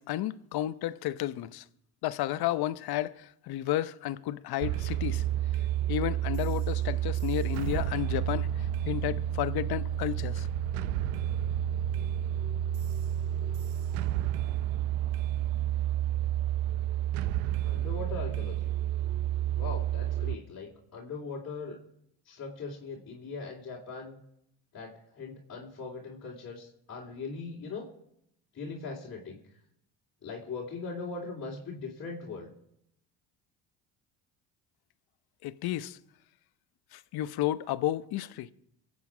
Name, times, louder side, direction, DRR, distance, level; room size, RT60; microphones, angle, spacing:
voice 1, 0.0-1.6 2.0-5.2 5.9-10.5 35.4-36.0 36.9-38.5, left 14 dB, 60° left, 0.8 m, -32 dB
sound 1, 4.6-20.4, right 11 dB, 85° right, 0.7 m, -30 dB
voice 2, 17.6-18.7 19.6-21.8 22.2-24.2 24.7-27.8 28.5-29.4 30.2-32.5, left 4 dB, 35° left, 3.3 m, -40 dB
24.0 x 8.4 x 4.9 m
supercardioid pair, 80°, 43 cm